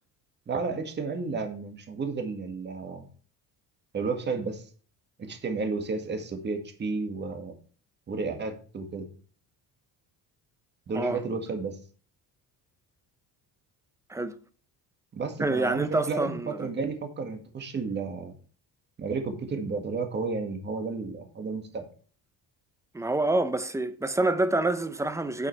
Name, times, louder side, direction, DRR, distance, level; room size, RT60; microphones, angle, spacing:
voice 1, 0.5-3.1 3.9-4.7 5.2-7.5 8.1-9.1 10.9-11.8 15.1-18.4 19.0-21.9, right 4 dB, 25° right, 1.9 m, -32 dB
voice 2, 15.4-16.6 22.9-25.5, right 2 dB, 10° right, 0.6 m, -27 dB
9.0 x 8.1 x 3.3 m
cardioid pair, 165°, 39 cm